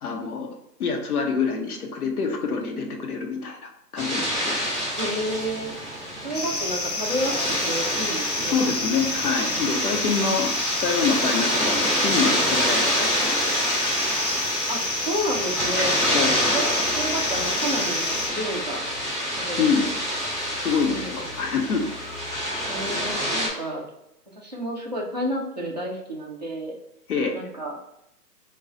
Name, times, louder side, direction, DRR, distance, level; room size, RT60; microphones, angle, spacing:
voice 1, 0.0-4.6 8.5-10.5 10.8-13.6 16.1-16.4 19.6-19.9 20.5-21.9 27.1-27.4, left 5 dB, 65° left, 3 dB, 0.9 m, -26 dB
sound 1, 4.0-23.5, equal, ahead, 1.1 m, -27 dB
voice 2, 5.0-5.8 6.2-8.7 14.7-16.0 16.5-18.8 19.4-19.9 20.8-21.4 22.7-23.8 24.3-26.7 27.3-27.8, equal, 30° right, -4 dB, 0.3 m, -31 dB
sound 2, 6.3-18.3, left 2 dB, 35° left, 0.7 m, -29 dB
3.6 x 2.3 x 4.0 m, 0.83 s
hypercardioid pair, 145°, 49 cm